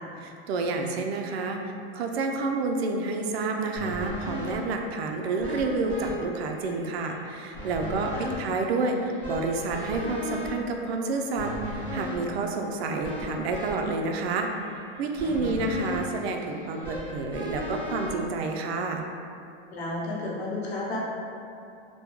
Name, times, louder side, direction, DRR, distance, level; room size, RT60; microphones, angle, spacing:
voice 1, 0.2-14.5 15.0-19.0, right 3 dB, 80° right, 3 dB, 0.5 m, -29 dB
sound 1, 3.8-19.0, left 1 dB, 5° left, 1.0 m, -38 dB
voice 2, 15.2-15.5 19.7-21.0, left 2 dB, 85° left, -5 dB, 1.0 m, -33 dB
3.5 x 2.2 x 2.9 m, 2.6 s
supercardioid pair, 150°, 31 cm